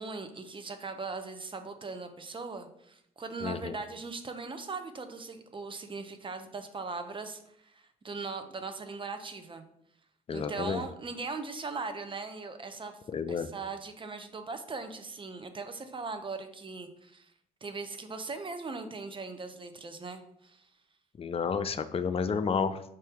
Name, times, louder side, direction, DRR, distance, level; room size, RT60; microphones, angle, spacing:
voice 1, 0.0-9.6 10.3-13.0 13.3-17.3 17.6-20.7, right 4 dB, 25° right, 7 dB, 0.6 m, -39 dB
voice 2, 3.4-3.8 10.3-10.8 13.1-13.5 21.2-22.8, left 6 dB, 30° left, 10 dB, 0.4 m, -31 dB
5.3 x 2.7 x 3.5 m, 0.73 s
figure-of-eight pair, 45°, 20 cm